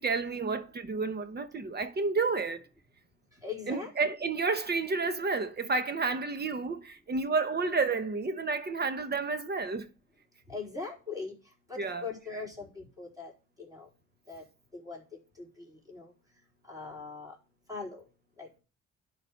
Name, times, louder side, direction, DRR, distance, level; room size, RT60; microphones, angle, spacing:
voice 1, 0.0-2.6 3.7-9.9 11.8-12.1, right 4 dB, 35° right, 1.2 m, -30 dB
voice 2, 3.4-4.1 10.5-11.3 11.7-13.3 13.6-13.9 14.3-14.4 14.7-15.0 15.4-15.5 15.9-16.1 16.7-17.3 17.7-18.0 18.4-18.6, left 4 dB, 10° right, 4.7 m, -40 dB
11.0 x 5.2 x 5.4 m
cardioid pair, 90°, 30 cm